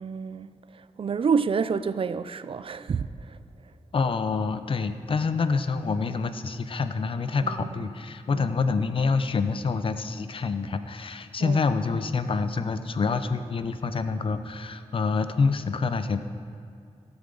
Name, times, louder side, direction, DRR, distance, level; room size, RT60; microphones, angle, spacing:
voice 1, 0.0-3.4 7.4-7.7 8.3-8.5 11.4-11.6, right 6 dB, 50° right, 0.3 m, -29 dB
voice 2, 3.9-16.2, left 4 dB, 50° left, 0.5 m, -27 dB
16.5 x 7.0 x 3.8 m
wide cardioid pair, 135°, 12 cm